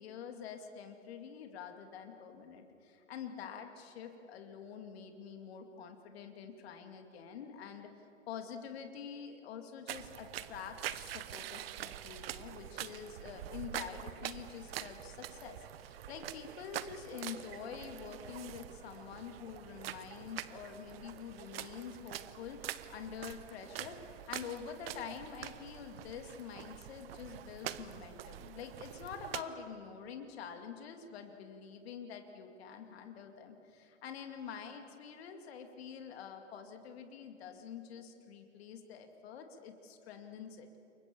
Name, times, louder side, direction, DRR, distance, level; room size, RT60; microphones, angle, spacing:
voice 1, 0.0-40.7, left 7 dB, 50° left, 6 dB, 2.5 m, -47 dB
sound 1, 9.9-29.4, right 12 dB, 50° right, 1.0 m, -45 dB
28.5 x 23.5 x 6.9 m, 2.9 s
figure-of-eight pair, 115°, 38 cm